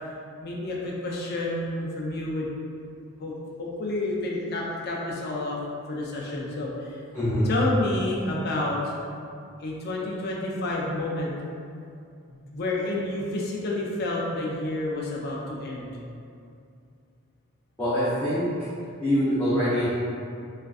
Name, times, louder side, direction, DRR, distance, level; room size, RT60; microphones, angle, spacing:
voice 1, 0.4-2.5 3.2-3.3 3.6-5.6 5.9-7.0 7.5-8.8 9.6-11.3 12.3-15.9, left 2 dB, 45° left, -3 dB, 0.4 m, -29 dB
voice 2, 7.1-7.5 17.8-18.5 19.0-19.9, equal, 10° left, -17 dB, 0.7 m, -24 dB
3.4 x 2.5 x 2.3 m, 2.5 s
head